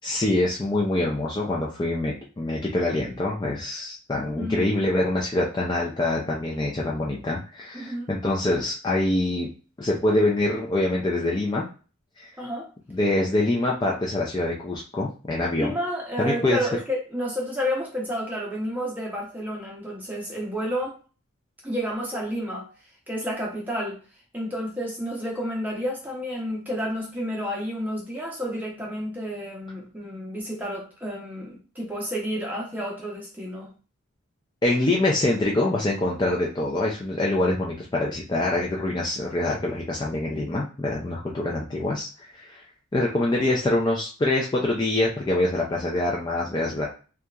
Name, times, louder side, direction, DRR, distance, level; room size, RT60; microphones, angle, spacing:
voice 1, 0.0-9.5 9.8-11.7 12.2-12.3 12.9-15.7 16.2-16.6 34.6-42.1 42.3-42.6 42.9-46.9, left 2 dB, 20° left, -3 dB, 0.3 m, -25 dB
voice 2, 4.4-4.8 7.7-8.1 12.4-12.7 15.6-21.0 21.6-22.7 23.1-24.0 24.3-33.7, equal, 10° right, -2 dB, 0.7 m, -30 dB
2.8 x 2.3 x 2.3 m, 0.36 s
head